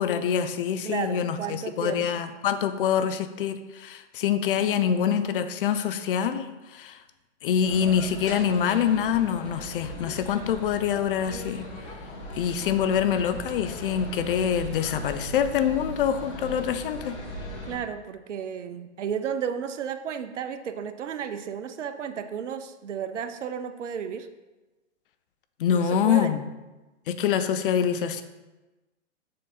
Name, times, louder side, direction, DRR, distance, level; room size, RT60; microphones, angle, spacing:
voice 1, 0.0-7.0 7.4-11.7 12.3-17.1 25.6-26.4 27.1-28.2, left 8 dB, 50° left, 10 dB, 0.5 m, -25 dB
voice 2, 0.8-2.0 17.7-24.3 25.7-26.3, right 7 dB, 80° right, 10 dB, 0.6 m, -33 dB
sound 1, 7.6-17.8, equal, 65° left, 1.9 m, -38 dB
6.5 x 3.6 x 4.1 m, 1.1 s
hypercardioid pair, 125°, 36 cm